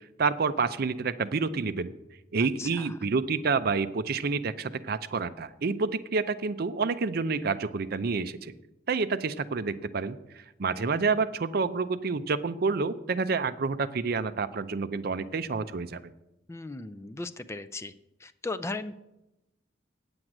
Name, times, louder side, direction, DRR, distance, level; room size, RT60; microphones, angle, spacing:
voice 1, 0.2-1.9 2.3-8.5 8.9-10.2 10.6-16.0, right 4 dB, 55° right, 13 dB, 0.5 m, -28 dB
voice 2, 2.6-2.9 16.5-17.9 18.2-19.0, left 3 dB, 15° left, 11 dB, 0.4 m, -37 dB
8.8 x 7.9 x 6.0 m, 0.92 s
head